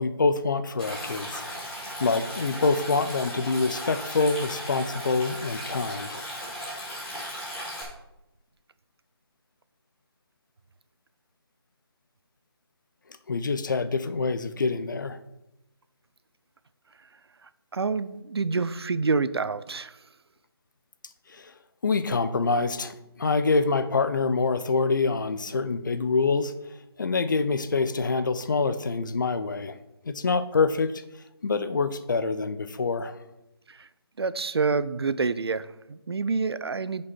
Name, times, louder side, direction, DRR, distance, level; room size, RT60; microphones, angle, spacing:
voice 1, 0.0-1.4 2.0-6.2 13.3-15.2 21.3-21.5 21.8-26.5 27.0-29.8 30.0-31.0 31.4-33.2, left 4 dB, 50° left, 12 dB, 0.6 m, -26 dB
Stream, 0.8-7.8, equal, 5° left, 1.5 m, -36 dB
voice 2, 17.7-20.0 33.7-33.9 34.2-37.1, right 4 dB, 75° right, 15 dB, 0.5 m, -27 dB
8.0 x 5.3 x 4.3 m, 0.91 s
figure-of-eight pair, 165°, 13 cm